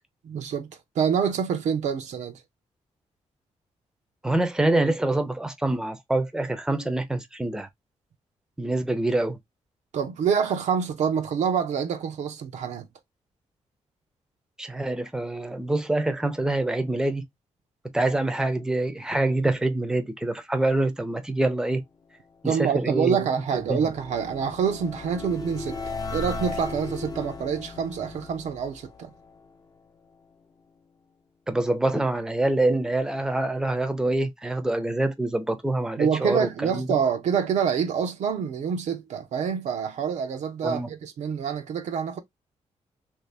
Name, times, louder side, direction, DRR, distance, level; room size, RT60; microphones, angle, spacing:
voice 1, 0.2-2.4 9.9-12.9 22.4-29.1 36.0-42.2, right 7 dB, 80° right, 0.8 m, -26 dB
voice 2, 4.2-7.7 8.6-9.4 14.6-17.2 17.9-21.8 22.4-23.2 23.5-23.8 31.5-37.0 40.6-40.9, right 2 dB, 5° right, 0.6 m, -25 dB
sound 1, 22.8-29.9, left 4 dB, 30° left, 0.7 m, -37 dB
3.1 x 2.8 x 3.3 m
wide cardioid pair, 140°, 12 cm